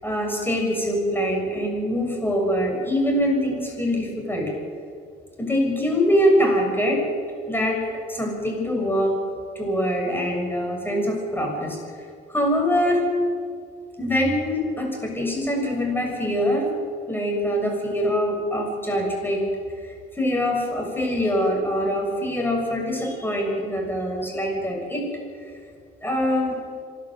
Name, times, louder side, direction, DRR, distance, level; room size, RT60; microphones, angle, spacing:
voice 1, 0.0-4.5 5.4-7.0 7.5-7.8 8.1-9.2 9.6-11.8 12.3-13.0 14.0-16.7 17.1-19.6 19.8-25.1 26.0-26.6, equal, 10° left, 1 dB, 7.1 m, -24 dB
27.0 x 12.0 x 8.0 m, 2.2 s
cardioid pair, 80°, 19 cm